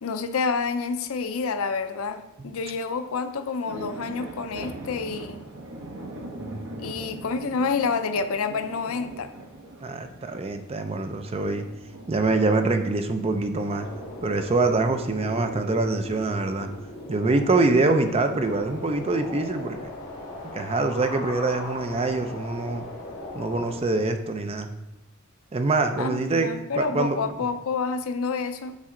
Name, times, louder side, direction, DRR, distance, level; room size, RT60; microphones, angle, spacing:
voice 1, 0.0-5.4 6.8-9.3 26.0-28.7, left 5 dB, 70° left, 9 dB, 0.5 m, -28 dB
sound 1, 2.7-19.1, right 1 dB, 65° right, 0.9 m, -43 dB
voice 2, 9.8-11.6 12.1-13.9 14.2-16.7 17.1-19.9 20.5-22.8 23.3-24.7 25.5-26.5 26.8-27.2, right 3 dB, 25° right, 7 dB, 0.4 m, -24 dB
sound 2, 13.6-23.8, left 1 dB, 40° left, 1.8 m, -38 dB
7.3 x 4.3 x 3.7 m, 0.92 s
head